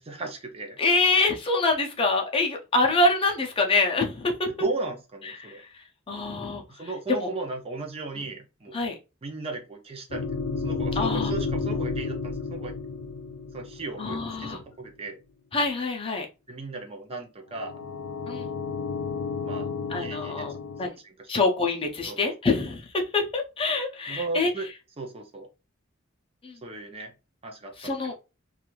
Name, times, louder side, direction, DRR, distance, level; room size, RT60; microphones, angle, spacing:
voice 1, 0.0-0.8 4.5-5.6 6.7-8.8 9.2-12.8 13.5-15.2 16.5-17.9 19.4-19.7 20.0-20.5 21.0-21.3 22.1-22.3 24.1-24.7 25.0-25.5 26.6-27.1 27.4-28.1, right 3 dB, 30° right, 3 dB, 0.5 m, -35 dB
voice 2, 0.8-4.5 5.4-5.5 6.1-6.6 7.2-7.3 8.7-8.9 11.0-11.3 14.0-14.6 15.5-16.3 18.3-18.5 19.9-20.5 20.8-20.9 21.3-24.5 26.4-26.5 27.8-28.1, left 3 dB, 25° left, 2 dB, 0.5 m, -25 dB
sound 1, 10.1-14.5 17.5-20.9, left 4 dB, 85° left, 0.4 m, -32 dB
2.5 x 2.3 x 3.0 m, 0.28 s
head